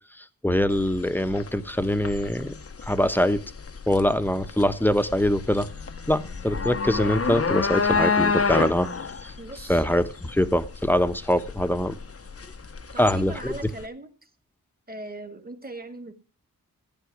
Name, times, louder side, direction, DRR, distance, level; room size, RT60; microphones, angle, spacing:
voice 1, 0.2-2.6 2.9-3.4 3.9-5.7 6.1-8.9 9.2-9.3 9.7-12.0 13.0-13.5, left 1 dB, 5° left, 11 dB, 1.1 m, -23 dB
sound 1, 0.7-13.9, left 5 dB, 40° left, 0.9 m, -29 dB
voice 2, 9.4-9.9 12.9-14.1 14.9-16.1, right 2 dB, 25° right, 9 dB, 1.9 m, -39 dB
15.0 x 9.1 x 6.0 m, 0.38 s
cardioid pair, 60°, 36 cm